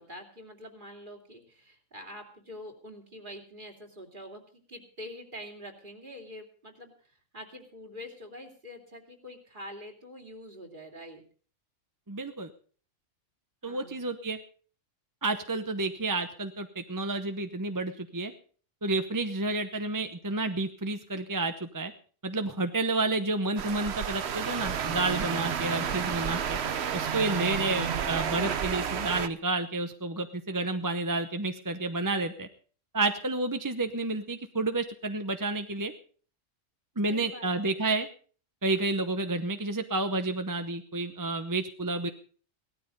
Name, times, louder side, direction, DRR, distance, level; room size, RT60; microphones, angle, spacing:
voice 1, 0.0-11.2 13.6-14.0 37.1-37.7, equal, 40° right, 3 dB, 3.1 m, -45 dB
voice 2, 12.1-12.5 13.6-14.4 15.2-18.3 18.8-21.9 22.2-26.6 26.9-32.5 32.9-35.9 37.0-38.1 38.6-42.1, right 2 dB, 20° right, 8 dB, 0.8 m, -30 dB
sound 1, 23.6-29.3, right 8 dB, 60° right, 1.1 m, -31 dB
17.5 x 13.0 x 5.4 m, 0.42 s
omnidirectional pair, 1.3 m